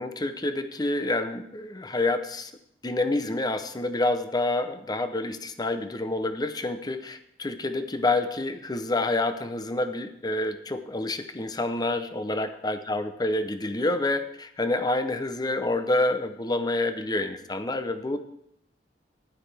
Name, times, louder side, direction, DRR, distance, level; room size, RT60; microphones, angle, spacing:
voice 1, 0.0-2.5 2.8-18.2, left 2 dB, 20° left, 9 dB, 0.7 m, -28 dB
14.5 x 11.0 x 3.4 m, 0.73 s
head